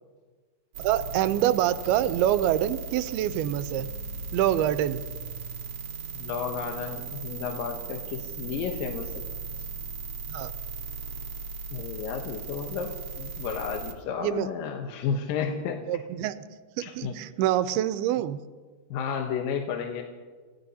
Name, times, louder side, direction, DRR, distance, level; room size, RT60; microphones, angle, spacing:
sound 1, 0.7-13.9, right 4 dB, 60° right, 1.5 m, -37 dB
voice 1, 0.8-3.9 4.3-5.0 10.3-10.5 14.2-14.5 15.9-16.4 16.8-18.4, right 12 dB, 85° right, 12 dB, 2.6 m, -26 dB
voice 2, 6.1-9.2 11.7-15.8 16.8-17.2 18.9-20.0, left 7 dB, 70° left, 2 dB, 2.5 m, -32 dB
28.5 x 17.5 x 2.8 m, 1.4 s
omnidirectional pair, 4.5 m